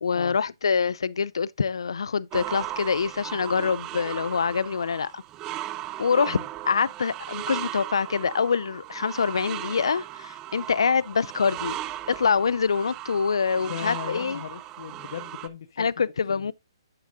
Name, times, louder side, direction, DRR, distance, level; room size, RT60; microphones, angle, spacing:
voice 1, 0.0-5.2 6.0-6.4 6.6-11.8 12.1-14.4 15.8-16.5, left 6 dB, 80° left, 0.5 m, -25 dB
sound 1, 2.3-15.5, right 14 dB, 20° right, 0.4 m, -37 dB
voice 2, 13.6-16.5, left 9 dB, 50° left, 1.1 m, -38 dB
9.8 x 7.2 x 2.6 m
hypercardioid pair, 155°, 3 cm